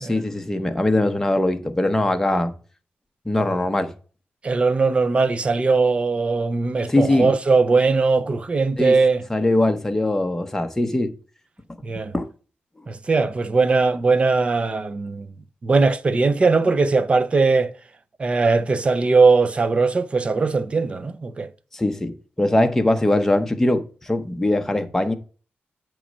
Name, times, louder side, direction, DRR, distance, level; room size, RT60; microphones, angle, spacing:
voice 1, 0.0-2.5 3.3-3.9 6.9-7.3 8.8-9.0 9.3-11.1 12.1-12.3 21.7-25.1, left 1 dB, 10° left, 0.7 m, -21 dB
voice 2, 4.4-9.2 11.8-12.1 12.9-15.3 15.6-17.7 18.2-21.5, right 4 dB, 30° right, 0.5 m, -20 dB
8.6 x 3.1 x 6.1 m
wide cardioid pair, 180°, 4 cm